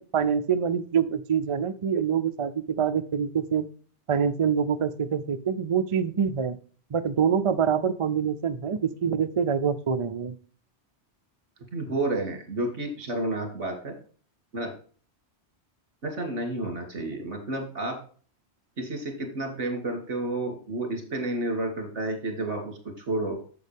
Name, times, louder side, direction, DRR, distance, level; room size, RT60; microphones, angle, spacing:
voice 1, 0.0-3.7 4.1-6.6 6.9-10.3, right 7 dB, 45° right, 10 dB, 0.4 m, -25 dB
voice 2, 11.7-13.9 14.5-14.7 16.0-18.0 18.8-23.4, right 2 dB, 70° right, 3 dB, 2.9 m, -30 dB
8.5 x 7.4 x 3.4 m, 0.42 s
omnidirectional pair, 1.2 m